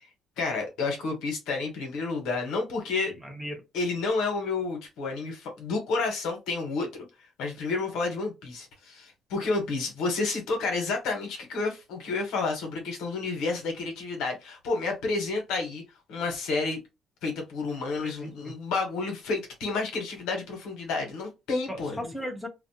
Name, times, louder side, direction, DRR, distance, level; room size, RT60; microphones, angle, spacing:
voice 1, 0.4-3.1 3.7-7.0 7.4-15.8 16.1-16.8 17.2-22.1, left 3 dB, 90° left, 0.9 m, -30 dB
voice 2, 3.1-3.6 18.0-18.5 21.7-22.5, equal, 5° right, 0.8 m, -37 dB
2.4 x 2.0 x 2.7 m
cardioid pair, 115°, 0 cm